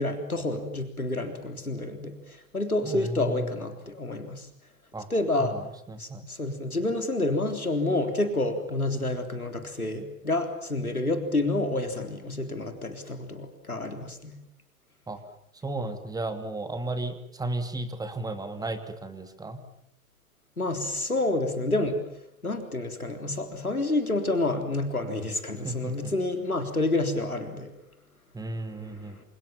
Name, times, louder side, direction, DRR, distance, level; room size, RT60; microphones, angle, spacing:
voice 1, 0.0-4.5 5.1-5.6 6.0-14.4 20.6-22.0 22.4-27.7 28.7-29.2, left 2 dB, 90° left, 6 dB, 3.8 m, -29 dB
voice 2, 2.8-3.5 4.9-5.1 5.4-6.2 15.1-15.2 15.6-19.6 25.6-26.1 28.3-29.2, right 2 dB, 10° right, 8 dB, 2.7 m, -34 dB
28.0 x 27.5 x 7.4 m, 0.72 s
figure-of-eight pair, 100°, 42 cm